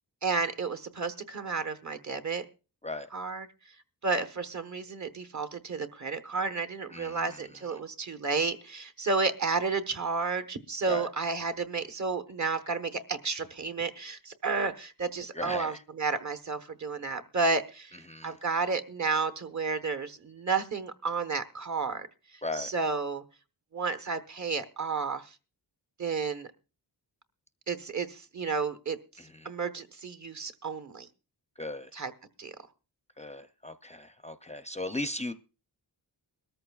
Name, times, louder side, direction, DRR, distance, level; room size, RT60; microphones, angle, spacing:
voice 1, 0.2-2.4 3.1-3.5 4.0-18.0 18.2-22.1 22.6-23.2 23.7-25.3 26.0-26.5 27.7-29.0 29.4-31.1 31.9-32.1 32.4-32.5, right 4 dB, 40° right, 9 dB, 1.2 m, -31 dB
voice 2, 6.9-7.6 10.9-11.1 15.3-15.8 18.0-18.4 22.4-22.7 29.2-29.5 31.6-31.9 33.2-35.3, left 2 dB, 15° left, 9 dB, 0.5 m, -37 dB
21.5 x 13.5 x 2.4 m, 0.33 s
wide cardioid pair, 130°, 42 cm